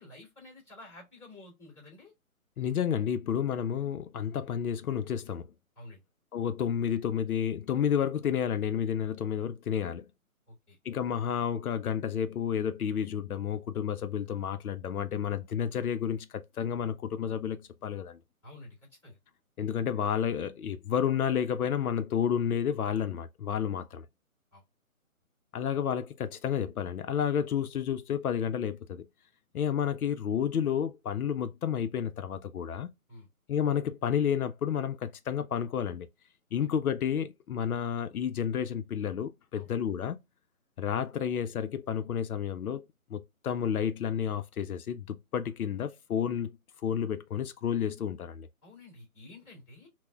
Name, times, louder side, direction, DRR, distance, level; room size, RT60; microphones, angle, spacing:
voice 1, 0.0-2.1 5.8-6.0 10.5-10.8 18.4-19.2 24.5-24.6 33.1-33.3 36.6-36.7 39.5-39.7 48.6-49.9, left 2 dB, 5° left, 2.0 m, -51 dB
voice 2, 2.6-5.5 6.3-10.1 10.8-18.2 19.6-24.1 25.5-29.0 29.5-32.9 33.5-36.1 36.5-40.2 40.8-42.8 43.1-46.6 46.8-48.5, left 8 dB, 80° left, 0.5 m, -31 dB
5.9 x 2.1 x 2.3 m
hypercardioid pair, 165°, 43 cm